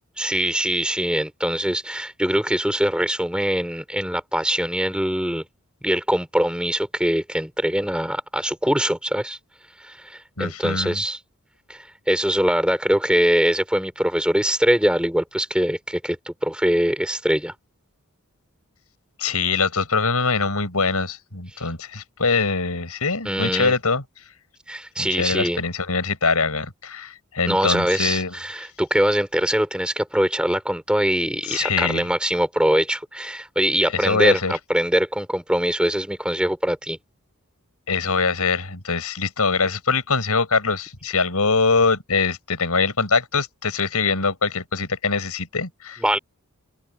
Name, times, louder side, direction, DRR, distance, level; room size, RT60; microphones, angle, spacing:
voice 1, 0.2-5.4 5.8-9.4 9.8-11.2 11.7-17.5 23.2-23.7 24.7-25.6 27.4-37.0 46.0-46.2, equal, 5° right, 4.5 m, -22 dB
voice 2, 10.4-11.0 19.2-24.0 25.0-28.4 31.5-32.0 33.9-34.5 37.9-46.2, left 4 dB, 80° left, 5.0 m, -23 dB
open air
head